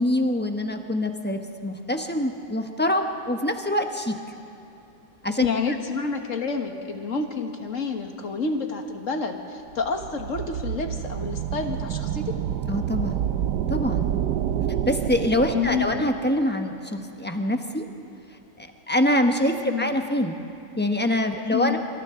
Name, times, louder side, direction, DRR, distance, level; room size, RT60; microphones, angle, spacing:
voice 1, 0.0-4.1 5.2-5.5 12.7-13.2 13.7-14.1 14.9-17.8 18.6-20.4 20.8-21.8, left 1 dB, 10° left, 4 dB, 0.9 m, -25 dB
voice 2, 5.4-12.3 15.5-16.0 19.6-19.9 21.5-21.8, left 5 dB, 55° left, 4 dB, 1.8 m, -28 dB
sound 1, 9.8-16.3, right 10 dB, 85° right, 1.3 m, -28 dB
27.0 x 25.5 x 3.8 m, 2.9 s
omnidirectional pair, 1.7 m